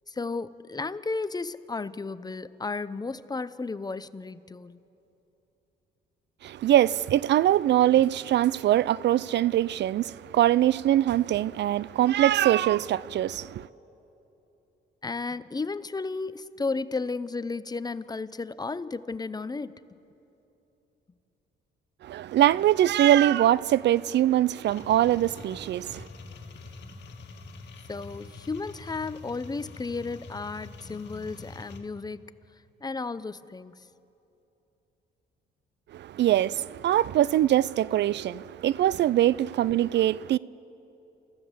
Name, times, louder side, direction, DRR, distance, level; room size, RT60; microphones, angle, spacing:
voice 1, 0.1-4.8 15.0-19.8 27.9-32.2 32.8-33.9, left 3 dB, 20° left, 0.6 m, -33 dB
voice 2, 6.4-13.7 22.0-26.0 35.9-40.4, right 12 dB, 60° right, 0.4 m, -23 dB
sound 1, 24.6-31.8, left 3 dB, 60° left, 2.2 m, -45 dB
28.5 x 15.0 x 7.3 m
cardioid pair, 90°, 20 cm